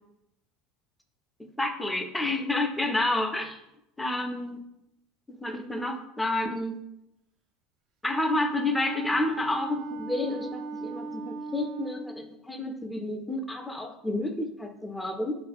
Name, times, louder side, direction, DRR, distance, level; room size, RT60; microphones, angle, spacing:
voice 1, 1.6-3.6 4.0-4.6 5.4-6.8 8.0-15.4, left 2 dB, 10° left, 5 dB, 0.5 m, -30 dB
Wind instrument woodwind instrument, 8.1-12.3, right 3 dB, 50° right, 0.3 m, -38 dB
2.7 x 2.5 x 4.0 m, 0.87 s
figure-of-eight pair, 70°, 0 cm